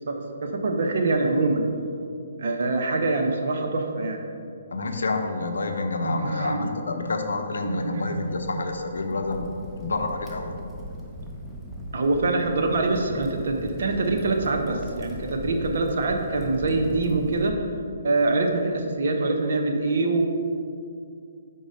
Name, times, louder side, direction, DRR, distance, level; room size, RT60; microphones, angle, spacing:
voice 1, 0.1-1.7 2.4-4.2 6.0-6.7 7.6-8.3 11.2-11.3 11.9-17.5 18.0-20.2, right 3 dB, 60° right, 3 dB, 0.7 m, -24 dB
voice 2, 4.7-9.5 9.8-10.6, left 3 dB, 75° left, 5 dB, 0.6 m, -28 dB
Crackle, 8.3-17.5, equal, 5° right, 0.7 m, -38 dB
5.1 x 3.9 x 5.1 m, 2.4 s
hypercardioid pair, 140°, 0 cm